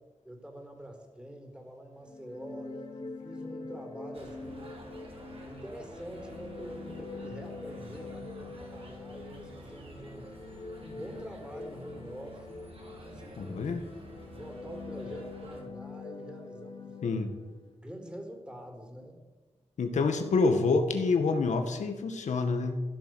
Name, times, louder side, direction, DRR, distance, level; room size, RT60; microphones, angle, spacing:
voice 1, 0.2-4.7 5.4-10.3 10.8-12.6 13.0-13.6 14.3-16.9 17.8-19.2, equal, 10° right, 3 dB, 4.6 m, -45 dB
sound 1, 2.0-17.7, left 3 dB, 45° left, 2.9 m, -45 dB
sound 2, 4.1-15.6, right 1 dB, 55° right, 4.9 m, -50 dB
voice 2, 13.4-13.8 17.0-17.3 19.8-22.8, left 4 dB, 90° left, 6 dB, 1.9 m, -27 dB
15.0 x 12.0 x 8.0 m, 1.2 s
wide cardioid pair, 80°, 12 cm